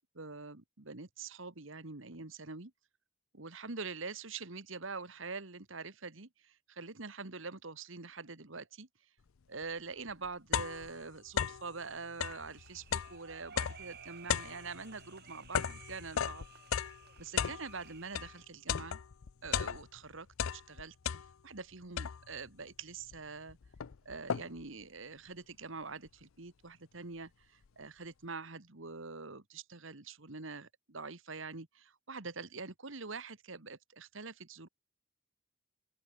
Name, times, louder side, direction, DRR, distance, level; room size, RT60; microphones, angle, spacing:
voice 1, 0.0-2.7 3.3-8.9 9.5-16.5 17.2-19.0 19.4-20.3 20.5-21.0 21.4-23.6 24.1-34.7, right 4 dB, 70° right, 1.8 m, -45 dB
sound 1, 9.6-9.7 10.1-11.7 12.1-18.4 18.7-20.1 20.3-21.6 22.0-22.5 23.1-23.2 23.5-24.7, left 8 dB, 80° left, 0.5 m, -36 dB
sound 2, 12.5-18.4, right 7 dB, 50° right, 4.5 m, -55 dB
open air
head